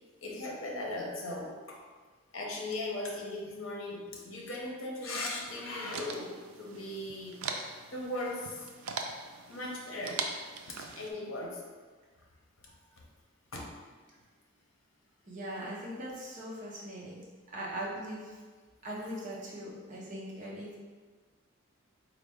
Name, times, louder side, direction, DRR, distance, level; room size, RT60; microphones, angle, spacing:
voice 1, 0.2-1.8 2.3-7.4 7.9-8.7 9.5-10.2 10.7-11.6 12.6-12.7 13.5-13.7, left 1 dB, 70° left, -1 dB, 0.8 m, -38 dB
sound 1, 5.4-11.1, right 4 dB, 85° right, 0.4 m, -41 dB
voice 2, 15.2-18.4 18.8-20.8, right 1 dB, 35° right, -5 dB, 0.7 m, -40 dB
4.1 x 2.4 x 3.4 m, 1.4 s
head